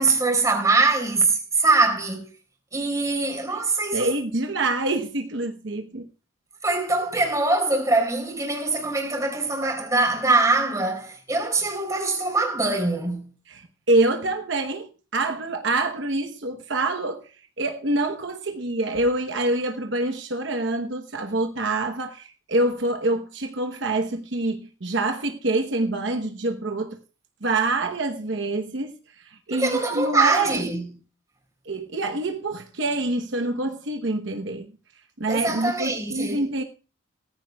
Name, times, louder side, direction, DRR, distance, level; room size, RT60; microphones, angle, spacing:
voice 1, 0.0-2.2 2.7-4.1 6.6-13.3 29.5-30.8 35.3-36.4, right 3 dB, 15° right, 3.6 m, -23 dB
voice 2, 3.9-6.1 13.5-27.0 27.4-30.6 31.6-34.7 35.2-36.6, right 2 dB, 65° right, 1.0 m, -26 dB
18.0 x 14.5 x 2.3 m
head